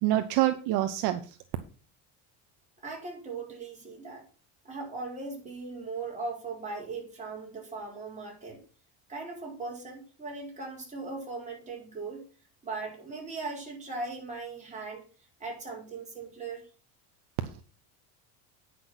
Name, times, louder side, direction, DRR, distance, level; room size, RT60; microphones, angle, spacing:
voice 1, 0.0-1.4, right 14 dB, 55° right, 9 dB, 0.9 m, -26 dB
voice 2, 2.8-4.3 4.6-8.6 9.1-12.2 12.6-15.0 15.4-16.6, right 3 dB, 15° right, -2 dB, 4.2 m, -39 dB
9.5 x 6.1 x 6.1 m, 0.37 s
cardioid pair, 145°, 46 cm